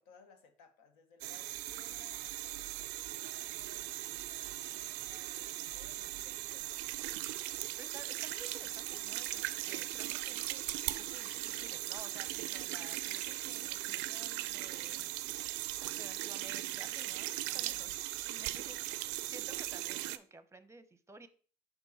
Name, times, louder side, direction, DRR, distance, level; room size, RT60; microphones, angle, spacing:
voice 1, 0.0-6.9 17.5-18.0 18.2-18.8, left 6 dB, 80° left, 8 dB, 1.0 m, -61 dB
sound 1, 1.2-20.2, right 16 dB, 75° right, 0.4 m, -39 dB
voice 2, 7.8-15.0 16.0-17.9 18.4-18.8 19.2-21.3, right 2 dB, 15° right, 13 dB, 0.7 m, -54 dB
5.4 x 4.6 x 4.1 m, 0.40 s
hypercardioid pair, 65°, 19 cm